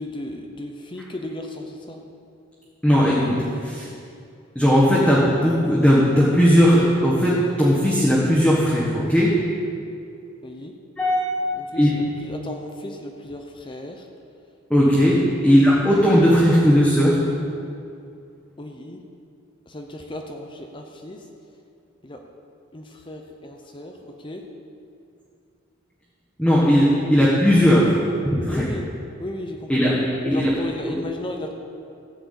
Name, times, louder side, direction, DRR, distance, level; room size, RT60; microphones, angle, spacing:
voice 1, 0.0-2.0 10.4-10.7 11.5-14.1 15.5-15.6 18.6-19.0 19.7-21.2 22.0-22.2 22.7-24.4 28.5-28.9 29.2-29.9 30.3-31.5, left 1 dB, 25° left, 3 dB, 0.7 m, -35 dB
voice 2, 2.8-3.9 4.5-9.4 11.0-11.9 14.7-17.2 26.4-27.9 28.4-28.6 29.7-30.5, equal, 5° left, -7 dB, 1.4 m, -17 dB
14.0 x 4.8 x 8.1 m, 2.5 s
head